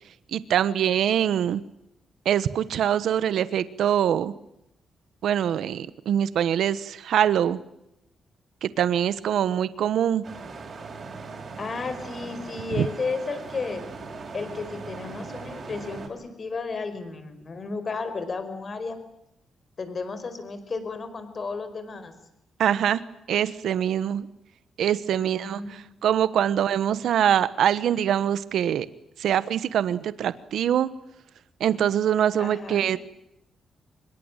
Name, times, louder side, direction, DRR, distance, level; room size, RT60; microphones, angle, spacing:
voice 1, 0.3-1.6 2.2-4.3 5.2-7.6 8.6-10.2 12.8-12.9 22.6-23.0 23.3-24.3 24.8-28.9 29.2-30.9 31.6-33.0, right 10 dB, 80° right, 15 dB, 1.1 m, -24 dB
sound 1, 10.2-16.1, right 4 dB, 40° right, 6.5 m, -39 dB
voice 2, 11.6-13.8 14.3-19.0 19.8-22.1 25.2-25.8 32.4-32.8, left 4 dB, 35° left, 10 dB, 5.0 m, -33 dB
25.0 x 22.0 x 9.0 m, 0.81 s
cardioid pair, 130°, 0 cm